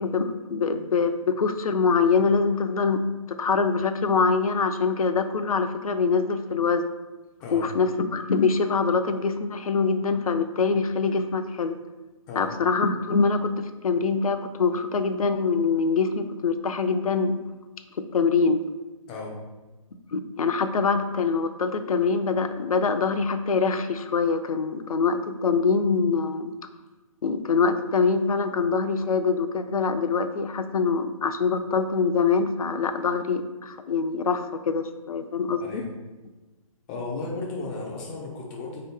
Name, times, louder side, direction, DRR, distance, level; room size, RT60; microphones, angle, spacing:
voice 1, 0.0-6.9 7.5-11.8 12.4-17.4 18.0-18.6 20.1-26.5 27.2-35.8, left 5 dB, 80° left, 8 dB, 0.4 m, -24 dB
voice 2, 19.1-19.4 35.6-35.9 36.9-38.8, left 3 dB, 10° left, -2 dB, 0.3 m, -34 dB
3.7 x 2.8 x 3.4 m, 1.1 s
hypercardioid pair, 145°, 18 cm